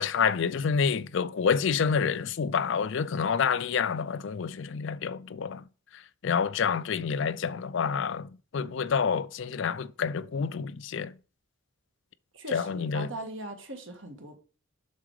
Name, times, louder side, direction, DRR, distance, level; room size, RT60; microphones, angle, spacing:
voice 1, 0.0-5.7 5.9-11.2 12.5-13.1, left 6 dB, 60° left, 0.4 m, -28 dB
voice 2, 12.3-14.4, right 1 dB, 60° right, 1.7 m, -40 dB
7.4 x 5.9 x 4.8 m
head